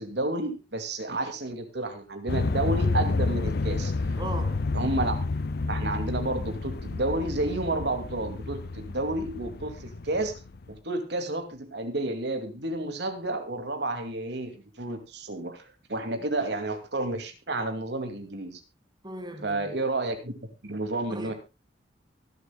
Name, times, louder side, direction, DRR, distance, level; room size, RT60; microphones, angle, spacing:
voice 1, 0.0-4.2 4.7-5.1 5.7-10.4 10.7-15.6 15.9-18.6 19.4-20.3 20.6-21.3, right 2 dB, 65° right, 2.5 m, -31 dB
airplane single prop pass distant low moody, 2.3-10.7, left 3 dB, 60° left, 0.6 m, -30 dB
voice 2, 4.2-4.7 16.2-16.3 19.0-19.7 21.1-21.3, right 1 dB, 25° right, 2.2 m, -38 dB
24.0 x 8.1 x 2.3 m
head